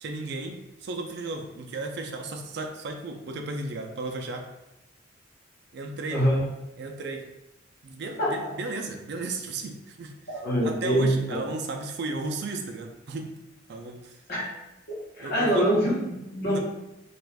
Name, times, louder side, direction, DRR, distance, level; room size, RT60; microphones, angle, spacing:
voice 1, 0.0-4.5 5.7-6.3 6.8-7.3 7.8-13.3 13.7-14.2 15.2-15.7 16.4-16.6, right 3 dB, 60° right, 3 dB, 0.4 m, -34 dB
voice 2, 6.1-6.4 8.2-8.3 10.3-11.2 14.3-14.4 14.9-16.6, equal, 50° left, -6 dB, 1.1 m, -24 dB
3.0 x 2.4 x 3.4 m, 0.93 s
head